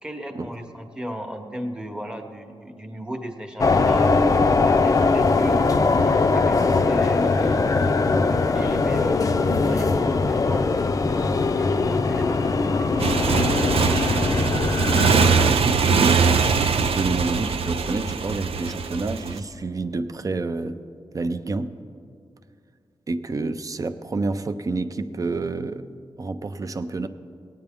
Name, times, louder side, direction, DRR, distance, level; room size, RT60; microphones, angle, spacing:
voice 1, 0.0-4.2 4.6-10.9 11.6-14.0, equal, 10° right, 4 dB, 0.9 m, -36 dB
sound 1, 3.6-15.5, left 3 dB, 35° left, 0.4 m, -21 dB
Motorcycle, 13.0-19.4, right 5 dB, 90° right, 0.5 m, -22 dB
voice 2, 15.4-16.4 16.7-20.8 21.1-21.8 23.1-25.9 26.2-27.1, right 3 dB, 35° right, 10 dB, 0.4 m, -28 dB
18.5 x 9.0 x 3.5 m, 2.3 s
wide cardioid pair, 155°, 10 cm